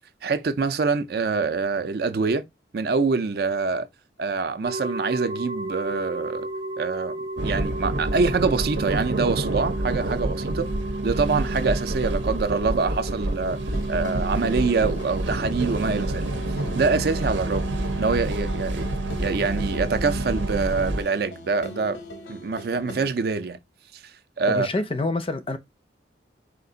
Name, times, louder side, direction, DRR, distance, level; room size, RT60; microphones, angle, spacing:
voice 1, 0.2-2.4 2.7-3.9 4.2-6.5 6.8-10.7 11.0-13.6 13.9-16.3 16.7-17.7 18.0-18.8 19.2-22.0 22.3-23.6 23.9-24.0 24.4-24.7, right 4 dB, 55° right, 0.4 m, -25 dB
sound 1, 4.6-17.2, right 1 dB, 30° right, 0.8 m, -35 dB
sound 2, 7.4-21.0, right 2 dB, 90° right, 0.8 m, -28 dB
sound 3, 13.7-23.1, left 1 dB, 85° left, 0.8 m, -41 dB
voice 2, 24.5-25.6, left 2 dB, 30° left, 0.4 m, -27 dB
4.4 x 2.4 x 3.8 m
head